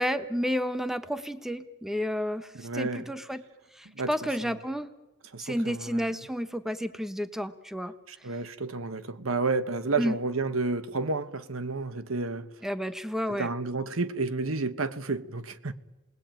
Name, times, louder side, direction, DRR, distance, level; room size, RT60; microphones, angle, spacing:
voice 1, 0.0-3.4 3.8-4.9 5.4-7.9 10.0-10.1 12.6-13.5, equal, ahead, 1.1 m, -31 dB
voice 2, 2.5-3.1 3.9-4.1 4.4-4.5 5.2-6.1 8.1-12.5 13.3-15.7, right 3 dB, 85° right, 1.4 m, -31 dB
28.5 x 20.0 x 9.1 m
head